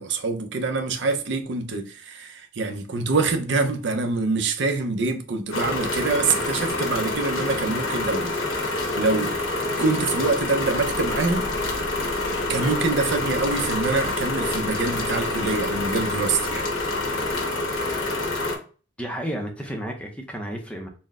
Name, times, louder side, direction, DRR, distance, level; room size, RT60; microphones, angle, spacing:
voice 1, 0.0-9.3 9.8-11.5 12.5-16.7, right 3 dB, 60° right, 0.6 m, -25 dB
sound 1, 5.5-18.6, left 2 dB, 85° left, 1.1 m, -27 dB
sound 2, 10.2-18.0, left 2 dB, 65° left, 0.5 m, -41 dB
voice 2, 19.0-20.9, equal, 5° left, 0.6 m, -32 dB
4.2 x 2.1 x 3.6 m
head